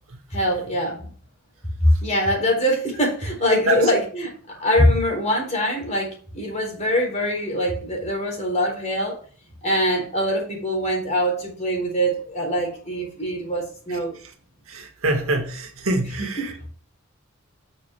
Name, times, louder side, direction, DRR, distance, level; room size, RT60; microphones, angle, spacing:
voice 1, 0.3-1.1 1.8-9.2 9.6-14.2 16.2-16.5, equal, 35° left, 4.1 m, -23 dB
voice 2, 14.7-16.7, right 1 dB, 75° right, 2.0 m, -25 dB
8.9 x 7.0 x 3.6 m
head